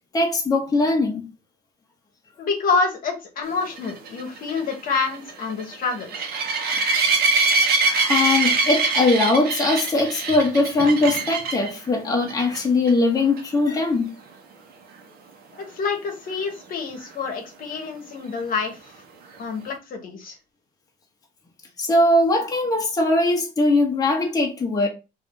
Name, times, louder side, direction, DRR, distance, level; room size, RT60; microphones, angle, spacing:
voice 1, 0.1-1.3 8.1-14.1 21.8-24.9, left 2 dB, 20° left, 0.9 m, -20 dB
voice 2, 2.4-6.3 15.6-18.8 19.4-20.3, left 4 dB, 55° left, 1.0 m, -27 dB
sound 1, 3.8-11.7 12.3-12.6 12.9-13.0 13.4-13.5 17.0-17.1, right 4 dB, 65° right, 0.9 m, -23 dB
2.7 x 2.6 x 3.5 m
cardioid pair, 110°, 17 cm